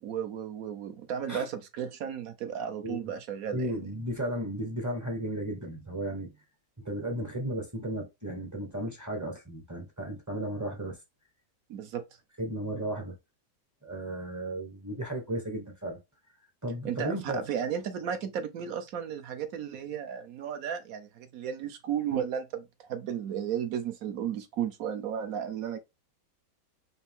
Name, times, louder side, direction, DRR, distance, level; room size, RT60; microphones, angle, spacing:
voice 1, 0.0-3.7 11.7-12.0 16.8-25.8, right 8 dB, 65° right, 1.0 m, -34 dB
voice 2, 3.5-6.3 6.8-11.0 12.4-13.2 13.8-16.0 16.6-17.4, right 1 dB, 15° right, 0.6 m, -34 dB
4.3 x 2.7 x 3.5 m
omnidirectional pair, 1.9 m